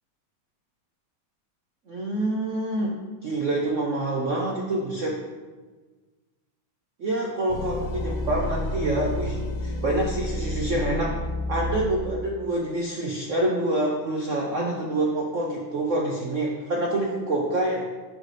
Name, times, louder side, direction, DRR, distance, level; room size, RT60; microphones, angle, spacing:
voice 1, 1.9-2.9 3.2-5.1 7.0-11.1 11.5-17.9, right 1 dB, 65° right, -2 dB, 0.7 m, -26 dB
sound 1, 7.5-12.4, left 1 dB, 75° left, 0.8 m, -30 dB
11.5 x 4.0 x 3.3 m, 1.3 s
omnidirectional pair, 2.3 m